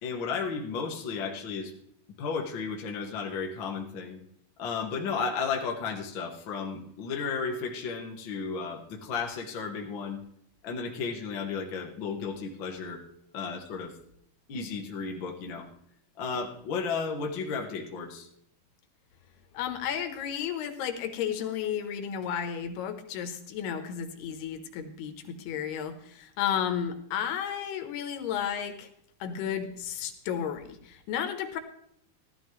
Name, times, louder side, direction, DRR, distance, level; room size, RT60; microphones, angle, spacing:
voice 1, 0.0-1.7 2.2-4.2 4.6-10.2 10.6-13.0 13.3-13.9 14.5-15.7 16.2-18.3, left 5 dB, 55° left, 1 dB, 1.3 m, -33 dB
voice 2, 19.5-28.9 29.2-31.6, left 8 dB, 85° left, 9 dB, 3.1 m, -33 dB
15.5 x 12.5 x 3.2 m, 0.70 s
omnidirectional pair, 4.5 m